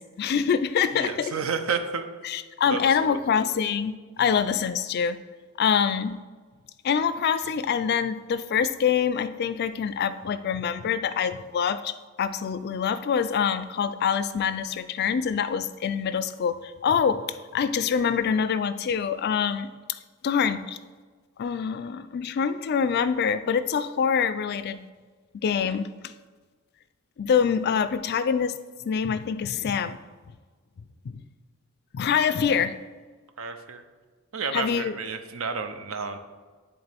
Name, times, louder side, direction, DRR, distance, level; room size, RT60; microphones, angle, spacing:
voice 1, 0.0-1.3 2.2-3.9 4.2-5.2 5.6-6.2 6.8-19.7 20.2-20.8 21.4-24.8 25.4-25.9 27.2-28.6 28.8-30.0 31.1-31.2 31.9-32.8 34.5-35.0, left 7 dB, 50° left, 12 dB, 0.3 m, -25 dB
voice 2, 0.9-2.0 2.7-3.2 4.2-4.4 33.4-33.8 34.3-36.2, right 5 dB, 75° right, 8 dB, 0.6 m, -31 dB
10.5 x 3.6 x 3.4 m, 1.4 s
head